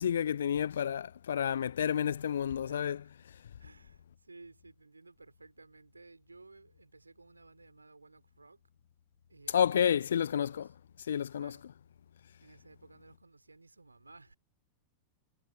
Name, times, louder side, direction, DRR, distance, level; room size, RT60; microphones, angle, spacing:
voice 1, 0.0-3.0 9.5-10.7 11.1-11.5, left 8 dB, 65° left, 0.4 m, -30 dB
voice 2, 2.6-3.1 3.4-8.6 9.3-10.7 11.4-11.7 12.4-14.3, right 3 dB, 80° right, 4.2 m, -57 dB
figure-of-eight pair, 90°, 0 cm